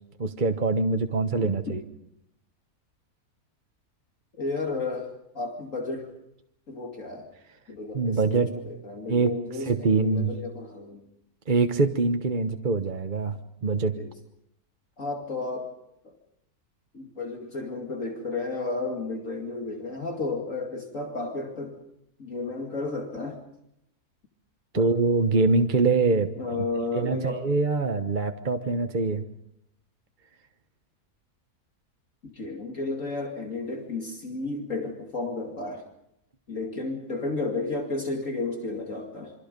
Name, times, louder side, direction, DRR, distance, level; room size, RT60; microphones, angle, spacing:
voice 1, 0.2-1.8 7.9-8.5 9.1-9.3 9.7-10.3 11.5-13.9 24.7-26.3 26.9-29.2, right 4 dB, 35° right, 6 dB, 1.1 m, -24 dB
voice 2, 1.4-1.7 4.4-6.1 6.7-7.3 7.7-11.0 14.0-14.1 15.0-15.7 16.0-16.2 16.9-21.8 22.2-23.4 24.7-24.9 26.4-27.4 32.2-35.8 36.5-39.3, left 3 dB, 55° left, 2 dB, 2.8 m, -32 dB
27.5 x 25.0 x 5.3 m, 0.78 s
omnidirectional pair, 1.6 m